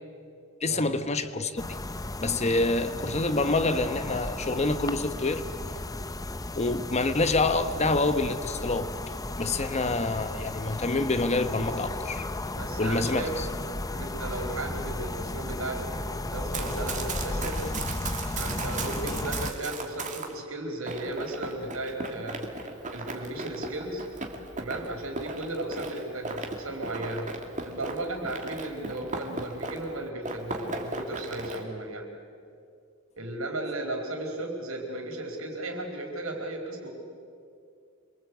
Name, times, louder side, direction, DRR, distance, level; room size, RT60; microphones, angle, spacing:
voice 1, 0.6-1.6 2.2-5.4 6.6-8.9 9.4-12.3 12.8-13.5, left 2 dB, 30° left, 1.1 m, -27 dB
sound 1, 1.6-19.5, left 2 dB, 15° left, 0.7 m, -34 dB
voice 2, 9.6-9.9 12.5-13.4 13.9-17.6 18.4-22.5 22.9-24.1 24.6-27.4 27.6-32.1 33.2-36.9, right 2 dB, 85° right, 4.5 m, -35 dB
Run, 16.3-20.3 20.9-30.0 30.2-31.6, right 3 dB, 35° right, 2.5 m, -37 dB
27.5 x 22.5 x 8.3 m
head